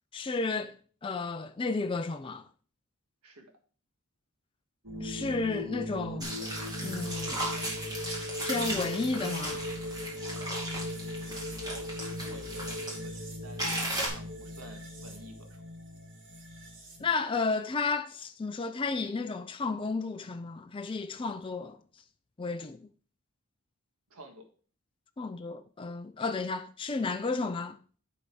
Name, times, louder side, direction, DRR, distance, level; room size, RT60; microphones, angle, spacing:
voice 1, 0.1-0.8 1.0-2.4 5.0-6.4 6.8-7.5 8.4-9.6 17.0-21.8 22.4-22.9 25.2-27.8, left 3 dB, 25° left, 0.4 m, -32 dB
sound 1, 4.8-17.1, left 1 dB, 55° right, 2.1 m, -39 dB
sound 2, 6.2-13.0 13.6-14.1, right 1 dB, 15° right, 2.3 m, -36 dB
voice 2, 11.2-15.6 24.1-24.5, equal, 85° right, 1.7 m, -50 dB
10.5 x 4.1 x 4.8 m
head